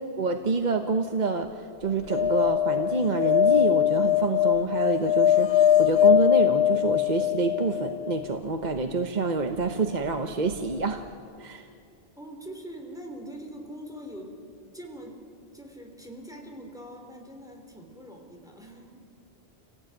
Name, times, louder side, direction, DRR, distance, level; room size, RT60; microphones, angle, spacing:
voice 1, 0.2-11.0 11.4-11.7, right 3 dB, 45° right, 6 dB, 1.1 m, -27 dB
sound 1, 2.1-8.2 10.5-10.6 10.8-10.9, left 10 dB, 70° left, 1.0 m, -22 dB
voice 2, 12.2-14.4 14.7-15.2 15.5-19.0, right 1 dB, 5° right, 2 dB, 3.2 m, -43 dB
28.0 x 18.0 x 8.9 m, 2.4 s
omnidirectional pair, 1.1 m